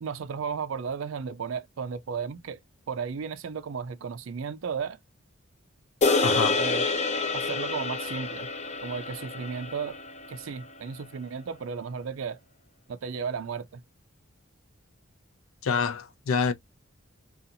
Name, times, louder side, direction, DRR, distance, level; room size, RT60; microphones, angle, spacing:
voice 1, 0.0-2.6 2.9-5.0 6.5-6.9 7.3-8.5 8.8-10.0 10.3-12.4 12.9-13.8, right 6 dB, 75° right, 0.4 m, -34 dB
sound 1, 6.0-10.5, left 3 dB, 35° left, 0.5 m, -28 dB
voice 2, 6.2-6.6 15.6-16.5, left 5 dB, 85° left, 0.5 m, -26 dB
2.6 x 2.4 x 2.7 m
head